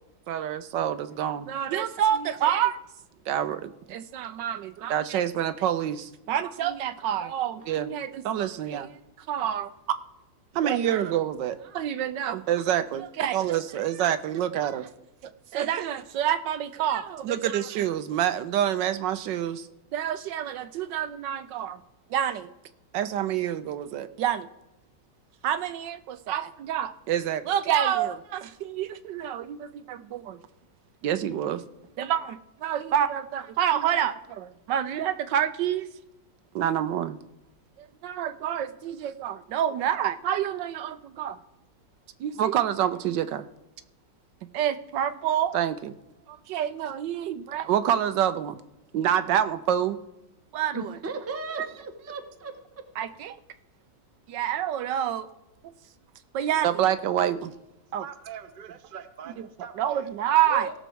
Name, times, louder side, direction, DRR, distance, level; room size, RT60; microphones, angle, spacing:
voice 1, 0.3-2.8 3.3-9.7 10.5-14.9 15.2-21.8 22.1-22.5 22.9-24.5 25.4-30.4 31.0-31.6 32.0-35.9 36.5-37.2 37.8-41.4 42.2-43.5 44.5-46.0 46.3-48.6 48.9-50.0 50.5-51.0 51.6-51.7 53.0-53.4 54.3-55.3 56.3-57.5 57.9-58.0 59.8-60.7, right 10 dB, 75° right, 12 dB, 1.3 m, -27 dB
voice 2, 50.7-52.5 60.5-60.7, right 3 dB, 10° right, 5 dB, 0.7 m, -35 dB
voice 3, 58.0-60.1, right 8 dB, 40° right, 8 dB, 0.7 m, -43 dB
17.0 x 6.7 x 4.6 m, 0.92 s
omnidirectional pair, 2.0 m